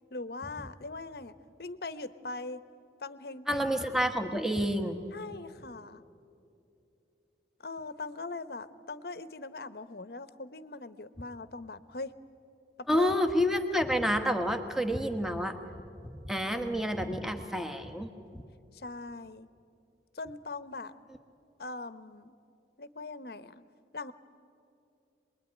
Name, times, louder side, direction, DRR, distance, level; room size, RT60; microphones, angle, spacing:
voice 1, 0.1-1.3 1.6-2.7 3.0-3.9 5.1-6.0 7.6-12.2 12.8-13.2 18.7-19.5 20.1-20.9 21.6-22.3 22.8-23.6 23.9-24.1, left 3 dB, 60° left, 14 dB, 0.9 m, -41 dB
voice 2, 3.5-5.0 12.9-15.6 16.2-18.1 18.3-18.4, equal, ahead, 6 dB, 1.3 m, -29 dB
27.0 x 21.0 x 9.7 m, 2.7 s
head